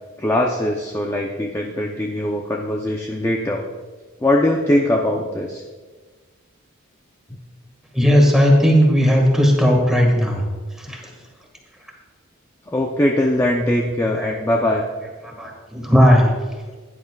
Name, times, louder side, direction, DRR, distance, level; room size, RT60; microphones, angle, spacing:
voice 1, 0.2-3.6 4.2-5.6 12.7-14.8, left 1 dB, 15° left, -1 dB, 0.7 m, -21 dB
voice 2, 7.9-10.4 10.9-11.0 14.2-14.3 15.2-16.3, equal, ahead, 0 dB, 1.8 m, -15 dB
16.0 x 10.5 x 2.4 m, 1.4 s
head